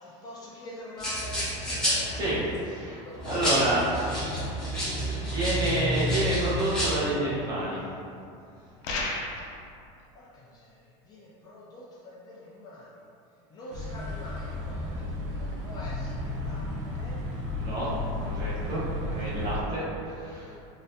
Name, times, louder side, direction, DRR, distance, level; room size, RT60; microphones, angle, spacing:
voice 1, 0.0-3.7 4.0-4.7 10.1-13.0 13.5-17.2 19.6-20.6, left 1 dB, 25° left, -6 dB, 0.3 m, -45 dB
sound 1, 1.0-2.6 3.1-6.9, equal, 5° left, 1.0 m, -29 dB
voice 2, 2.1-3.8 5.3-7.9 17.6-17.9 18.2-20.6, right 1 dB, 30° right, -8 dB, 0.9 m, -29 dB
sound 2, 8.8-9.6, left 2 dB, 90° left, 0.6 m, -31 dB
sound 3, 13.7-19.6, left 2 dB, 45° right, 0.5 m, -33 dB
3.8 x 2.6 x 2.6 m, 2.5 s
cardioid pair, 165°, 16 cm